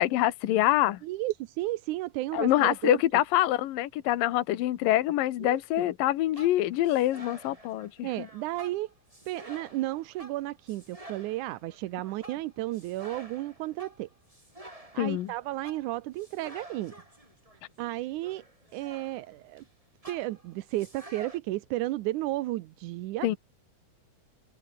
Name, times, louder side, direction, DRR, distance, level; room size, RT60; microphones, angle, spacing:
voice 1, 0.0-1.0 2.3-8.3 15.0-15.3 23.2-23.4, left 14 dB, 80° left, 2.8 m, -25 dB
voice 2, 1.0-3.0 5.4-5.9 8.0-8.9 9.3-14.1 14.9-16.9 17.8-18.4 18.7-19.6 20.1-23.4, right 17 dB, 75° right, 2.0 m, -33 dB
sound 1, 6.3-19.7 20.0-21.4, right 1 dB, 10° right, 5.1 m, -50 dB
omnidirectional pair, 4.0 m